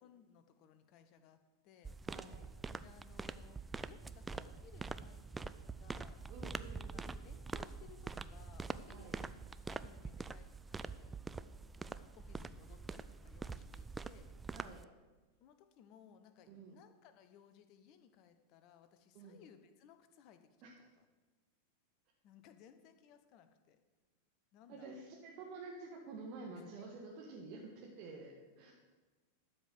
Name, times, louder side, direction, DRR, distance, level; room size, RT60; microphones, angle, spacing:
voice 1, 0.0-2.0 2.8-6.2 6.9-9.3 9.7-11.2 11.7-14.3 15.4-21.0 22.2-23.8 24.5-25.0 26.7-26.9, left 8 dB, 40° left, 9 dB, 1.0 m, -62 dB
sound 1, 1.8-14.8, right 4 dB, 10° right, 0.4 m, -45 dB
voice 2, 2.0-2.4 6.3-7.1 8.9-9.2 14.5-14.8 16.5-16.8 19.1-19.4 20.6-20.7 24.7-28.7, right 3 dB, 40° right, -2 dB, 1.7 m, -50 dB
12.5 x 5.3 x 7.7 m, 1.3 s
figure-of-eight pair, 90°, 0 cm